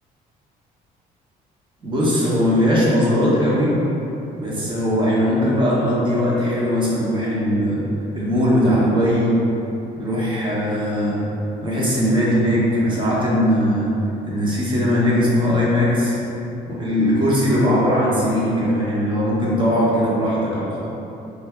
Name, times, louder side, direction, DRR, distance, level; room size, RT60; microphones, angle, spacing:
voice 1, 1.8-3.8 4.4-7.8 8.1-9.3 10.0-11.2 11.6-13.9 14.2-16.2 16.7-20.9, equal, 30° right, -6 dB, 1.0 m, -19 dB
3.4 x 2.7 x 3.5 m, 3.0 s
cardioid pair, 110°, 17 cm